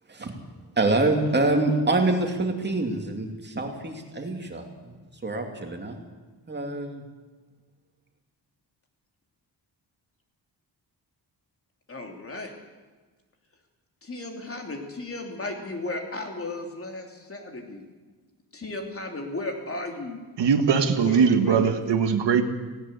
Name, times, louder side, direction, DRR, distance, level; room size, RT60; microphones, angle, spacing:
voice 1, 0.8-4.6 5.2-6.0 6.5-7.0, right 2 dB, 25° right, 3 dB, 2.6 m, -25 dB
voice 2, 11.9-12.6 14.0-17.8 18.5-20.2 20.7-21.7, left 2 dB, 30° left, 3 dB, 3.1 m, -35 dB
voice 3, 20.4-22.4, right 6 dB, 80° right, 7 dB, 1.8 m, -21 dB
18.5 x 17.0 x 8.2 m, 1.3 s
wide cardioid pair, 180°, 42 cm